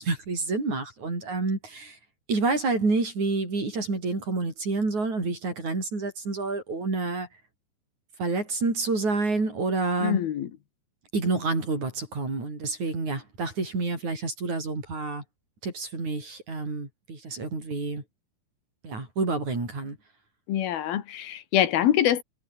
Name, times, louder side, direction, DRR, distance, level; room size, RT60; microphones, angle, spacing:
voice 1, 0.0-2.0 2.3-7.3 8.2-10.2 11.1-15.2 15.6-18.0 18.8-20.0, right 3 dB, 50° right, 9.1 m, -28 dB
voice 2, 10.0-10.5 20.5-22.2, left 11 dB, 90° left, 3.8 m, -24 dB
omnidirectional pair, 4.2 m